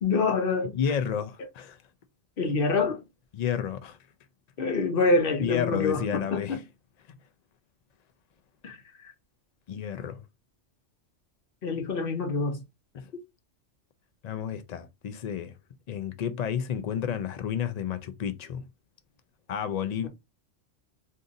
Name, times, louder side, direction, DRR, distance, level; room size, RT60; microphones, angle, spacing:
voice 1, 0.0-0.8 2.4-3.0 4.6-6.6 8.6-9.1 11.6-12.6, left 3 dB, 55° left, 0.9 m, -26 dB
voice 2, 0.7-1.8 3.3-4.0 5.4-6.6 9.7-10.2 12.9-13.1 14.2-15.5 15.9-18.7 19.5-20.1, left 8 dB, 70° left, 0.4 m, -31 dB
2.6 x 2.5 x 3.8 m
omnidirectional pair, 1.3 m